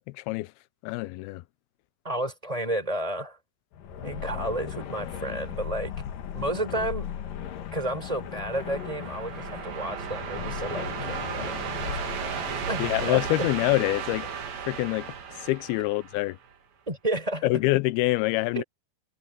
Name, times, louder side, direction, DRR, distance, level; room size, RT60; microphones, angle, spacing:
voice 1, 0.1-0.5 0.8-1.4 12.8-14.3 14.7-15.1 15.4-16.4 17.4-18.6, left 19 dB, 80° left, 2.5 m, -25 dB
voice 2, 2.0-3.4 4.0-5.9 6.3-7.1 7.7-13.5 16.9-17.6 18.5-18.6, right 1 dB, 10° right, 5.0 m, -32 dB
sound 1, 3.7-13.0, left 9 dB, 65° left, 2.9 m, -37 dB
sound 2, 8.0-16.5, right 7 dB, 65° right, 4.4 m, -35 dB
omnidirectional pair, 4.7 m